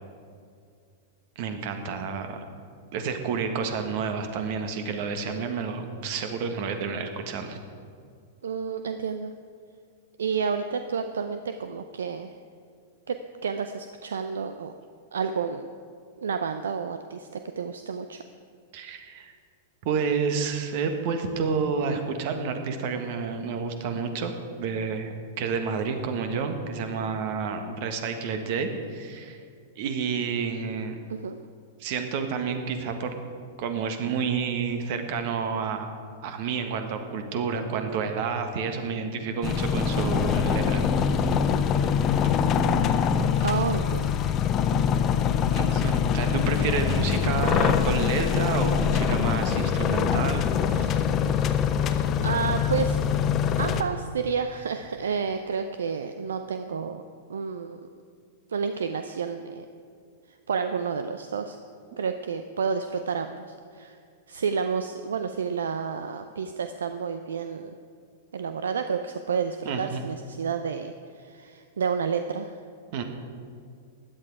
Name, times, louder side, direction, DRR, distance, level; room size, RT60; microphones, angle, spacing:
voice 1, 1.3-2.4 2.9-7.6 18.7-19.3 19.8-29.4 29.7-31.0 31.8-33.1 33.6-35.9 36.2-41.4 43.4-43.6 45.5-50.4 50.7-51.1 69.6-70.0 72.9-73.0, right 5 dB, 50° right, 6 dB, 1.5 m, -30 dB
voice 2, 8.4-9.3 10.2-12.3 13.1-13.2 13.4-14.8 15.1-15.7 16.2-18.2 31.1-31.4 43.4-44.3 51.9-53.0 53.6-57.0 57.3-57.9 58.5-59.7 60.5-61.6 62.0-64.0 64.3-67.8 68.3-72.5, right 6 dB, 70° right, 9 dB, 0.5 m, -30 dB
sound 1, 39.4-53.8, left 7 dB, 30° left, 0.8 m, -24 dB
16.0 x 10.5 x 4.8 m, 2.3 s
figure-of-eight pair, 100°, 0 cm